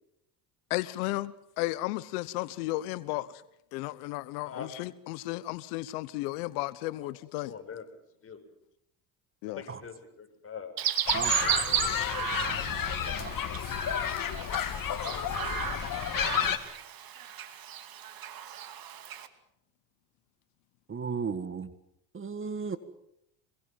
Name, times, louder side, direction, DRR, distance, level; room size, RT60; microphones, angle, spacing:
voice 1, 0.7-1.3 1.6-3.4 3.7-7.5 9.4-9.6, left 18 dB, 90° left, 1.1 m, -34 dB
voice 2, 7.4-7.8 8.2-8.4 9.5-10.7, left 7 dB, 30° left, 6.7 m, -43 dB
Chirp tweet, 10.8-19.3, right 10 dB, 50° right, 2.7 m, -34 dB
sound 1, 11.1-16.6, left 10 dB, 45° left, 2.4 m, -31 dB
voice 3, 11.1-13.5 20.9-21.7 22.1-22.8, right 5 dB, 30° right, 1.8 m, -37 dB
25.5 x 22.0 x 7.4 m
supercardioid pair, 95°, 44 cm